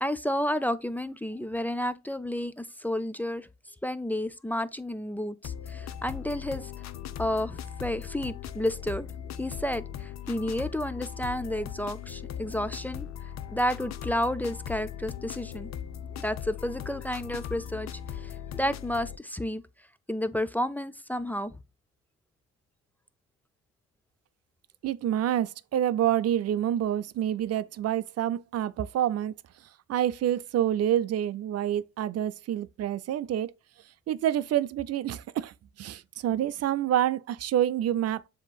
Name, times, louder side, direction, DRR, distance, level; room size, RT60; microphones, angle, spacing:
voice 1, 0.0-3.5 3.8-6.7 7.2-9.1 9.4-13.1 13.5-15.7 16.2-19.6 20.1-21.6, left 1 dB, 5° left, 0.4 m, -31 dB
sound 1, 5.4-19.2, left 9 dB, 60° left, 0.5 m, -39 dB
voice 2, 24.8-29.3 29.9-33.5 34.1-38.3, right 11 dB, 55° right, 0.5 m, -27 dB
7.3 x 3.0 x 2.3 m
cardioid pair, 90°, 30 cm